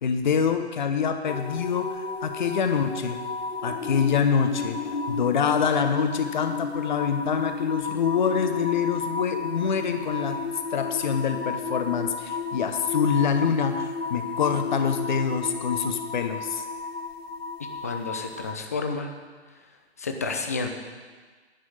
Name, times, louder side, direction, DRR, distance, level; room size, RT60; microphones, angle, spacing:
voice 1, 0.0-3.2 3.6-10.4 10.7-16.6, left 6 dB, 45° left, 7 dB, 0.8 m, -25 dB
sound 1, 1.3-18.5, left 4 dB, 65° left, 1.1 m, -32 dB
voice 2, 17.8-19.1 20.0-20.7, left 4 dB, 15° left, 5 dB, 0.4 m, -30 dB
10.5 x 6.2 x 8.9 m, 1.4 s
figure-of-eight pair, 135°, 33 cm